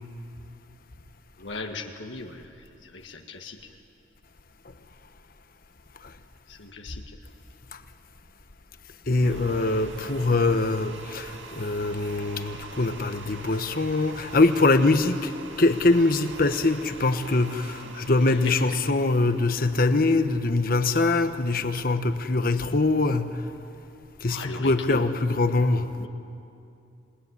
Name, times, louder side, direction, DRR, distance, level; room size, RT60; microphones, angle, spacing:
voice 1, 1.4-2.5 2.8-3.6 6.5-7.0 24.3-25.0 26.0-26.1, left 3 dB, 75° left, 1.8 m, -37 dB
voice 2, 9.1-15.3 15.6-23.4 24.2-25.9, left 2 dB, 50° left, 1.2 m, -23 dB
sound 1, 9.1-21.3, right 3 dB, 80° right, 2.1 m, -44 dB
27.0 x 20.0 x 9.8 m
head